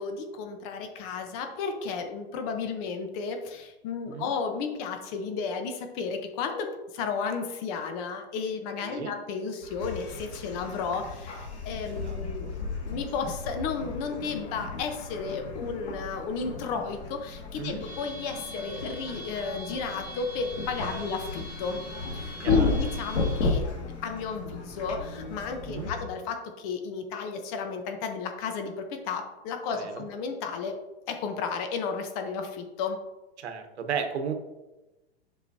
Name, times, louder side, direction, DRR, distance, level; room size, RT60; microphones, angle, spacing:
voice 1, 0.0-12.5 12.8-21.8 22.1-23.7 24.0-30.8 31.1-33.0, left 5 dB, 35° left, 6 dB, 0.9 m, -33 dB
voice 2, 8.8-9.1 11.9-12.6 17.6-17.8 20.8-21.0 22.4-22.7 25.7-25.9 29.7-30.0 33.4-34.3, right 7 dB, 80° right, 6 dB, 1.2 m, -35 dB
sound 1, 9.6-26.0, left 3 dB, 85° left, 2.1 m, -34 dB
7.9 x 5.1 x 2.7 m, 1.0 s
hypercardioid pair, 145°, 33 cm